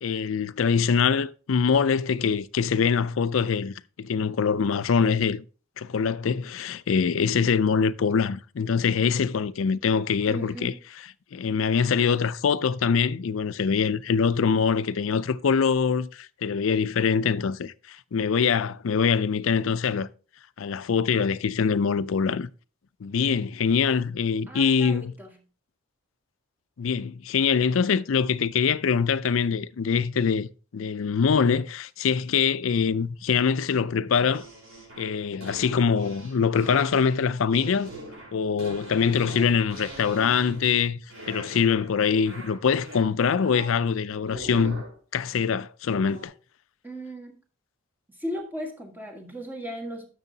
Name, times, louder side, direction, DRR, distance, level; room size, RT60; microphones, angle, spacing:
voice 1, 0.0-5.4 5.8-10.7 11.3-20.1 20.6-22.5 23.0-25.1 26.8-30.5 30.7-34.5 35.0-37.9 38.3-41.0 41.3-44.8 45.1-46.3, left 6 dB, 70° left, 0.4 m, -24 dB
voice 2, 10.3-10.8 24.5-25.4 46.8-47.3 48.1-50.1, equal, 10° right, 1.6 m, -36 dB
sound 1, 34.3-40.8 41.1-41.9 42.2-43.8 44.2-45.0 46.1-46.3, right 1 dB, 85° right, 4.2 m, -42 dB
10.5 x 6.8 x 2.8 m
head